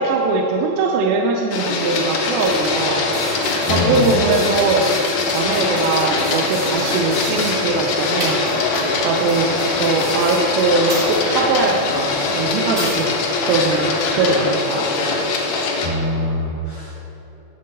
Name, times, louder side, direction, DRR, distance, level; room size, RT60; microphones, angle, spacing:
voice 1, 0.0-3.0 3.3-3.4 3.7-4.9 5.3-8.7 9.0-13.1 13.5-14.9, right 3 dB, 85° right, 1 dB, 2.4 m, -21 dB
Printer, 1.5-15.9, left 3 dB, 70° left, 1.8 m, -22 dB
sound 1, 2.4-14.3, right 1 dB, 55° right, 0.4 m, -31 dB
voice 2, 3.7-4.1 15.8-17.0, left 2 dB, 85° left, -4 dB, 1.4 m, -23 dB
11.0 x 3.7 x 6.5 m, 3.0 s
omnidirectional pair, 4.1 m